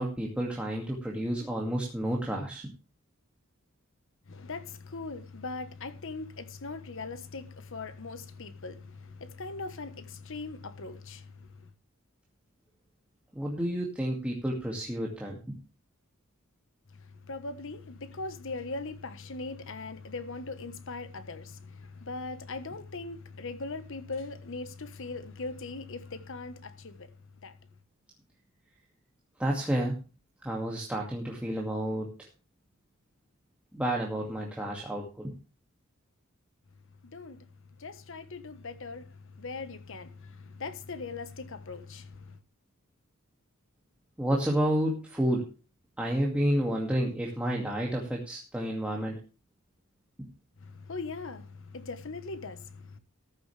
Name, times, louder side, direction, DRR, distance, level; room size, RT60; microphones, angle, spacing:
voice 1, 0.0-2.7 13.3-15.4 29.4-30.0 30.4-32.1 33.7-35.3 44.2-45.5 46.0-49.2, right 1 dB, 5° right, 2.3 m, -30 dB
voice 2, 4.3-11.7 16.9-27.6 37.0-37.5 37.8-42.4 50.6-53.0, left 3 dB, 65° left, 1.3 m, -40 dB
14.5 x 11.0 x 3.4 m
head